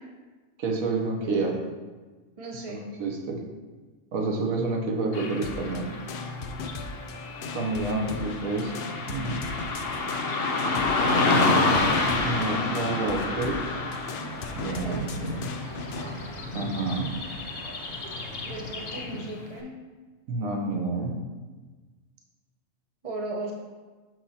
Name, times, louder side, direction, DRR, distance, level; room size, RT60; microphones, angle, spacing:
voice 1, 0.6-1.5 2.7-3.4 4.1-5.9 7.5-8.7 9.1-9.4 12.2-13.6 14.5-15.5 16.5-17.1 20.3-21.2, right 3 dB, 75° right, 1 dB, 1.3 m, -29 dB
voice 2, 2.4-2.8 14.8-15.1 18.5-19.7 23.0-23.5, right 2 dB, 35° right, 0 dB, 0.5 m, -36 dB
Car passing by / Traffic noise roadway noise, 5.1-19.4, left 3 dB, 55° left, 0.8 m, -29 dB
sound 1, 5.4-16.1, left 4 dB, 75° left, 0.5 m, -38 dB
sound 2, 14.2-19.0, equal, 55° right, 2.5 m, -42 dB
6.5 x 6.0 x 2.8 m, 1.3 s
omnidirectional pair, 1.5 m